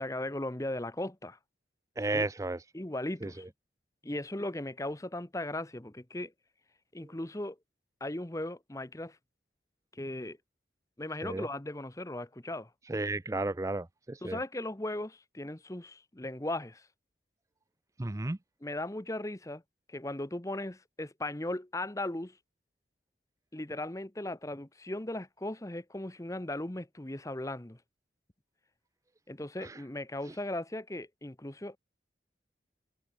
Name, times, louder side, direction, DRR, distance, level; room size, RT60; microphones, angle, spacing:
voice 1, 0.0-1.4 2.1-2.2 2.7-3.4 4.0-6.3 6.9-7.6 8.0-9.2 9.9-10.4 11.0-12.7 14.2-16.8 18.6-19.6 19.9-22.3 23.5-27.8 29.3-31.8, left 1 dB, 15° left, 0.9 m, -37 dB
voice 2, 2.0-2.6 3.2-3.3 11.2-11.5 12.9-14.4 18.0-18.4 29.6-29.8, right 2 dB, 15° right, 0.5 m, -33 dB
head